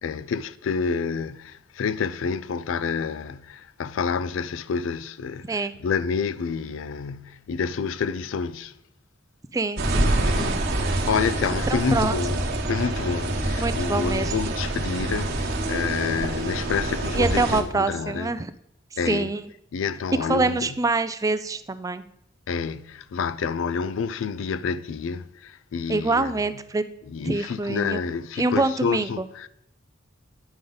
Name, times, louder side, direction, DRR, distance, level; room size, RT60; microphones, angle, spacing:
voice 1, 0.0-8.7 10.3-18.3 19.0-19.3 19.7-20.7 22.5-26.3 27.1-29.5, left 5 dB, 75° left, 0.4 m, -28 dB
voice 2, 9.5-10.6 11.7-12.1 13.6-14.3 17.1-18.5 19.1-19.5 20.3-22.0 25.9-26.8 27.2-28.0 28.4-29.2, right 3 dB, 15° right, 0.3 m, -25 dB
sound 1, 9.8-17.6, right 1 dB, 55° right, 1.2 m, -26 dB
9.1 x 5.3 x 3.9 m
head